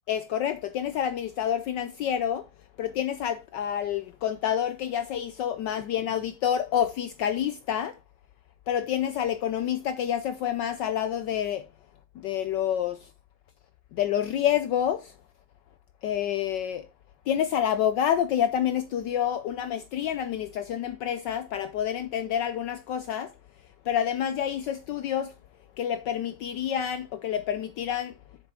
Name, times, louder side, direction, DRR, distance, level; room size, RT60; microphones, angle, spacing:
voice 1, 0.1-2.5 2.8-8.0 8.7-11.7 12.2-13.1 13.9-15.1 16.0-16.9 17.3-23.3 23.8-25.3 25.8-28.2, left 10 dB, 75° left, 1.1 m, -28 dB
7.9 x 6.7 x 3.7 m
omnidirectional pair, 2.3 m